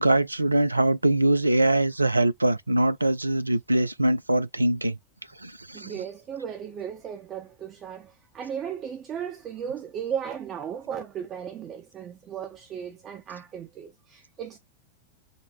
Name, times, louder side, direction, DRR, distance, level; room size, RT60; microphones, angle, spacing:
voice 1, 0.0-5.0 5.4-5.9, right 1 dB, 85° right, 0.4 m, -23 dB
voice 2, 5.7-14.6, right 8 dB, 30° right, 0.7 m, -36 dB
4.1 x 2.1 x 3.2 m
figure-of-eight pair, 90°, 0 cm